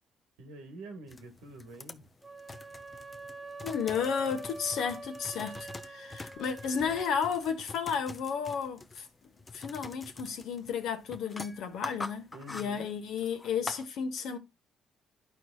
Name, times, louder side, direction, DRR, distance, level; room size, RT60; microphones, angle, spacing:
voice 1, 0.4-2.1 12.3-12.9, right 2 dB, 90° right, 1.5 m, -47 dB
sound 1, 1.1-13.9, left 3 dB, 25° left, 0.6 m, -46 dB
sound 2, 2.2-7.2, right 2 dB, 20° right, 1.1 m, -45 dB
voice 2, 3.6-9.1 9.5-14.4, left 6 dB, 75° left, 1.2 m, -33 dB
11.0 x 4.6 x 2.3 m
supercardioid pair, 65°, 0 cm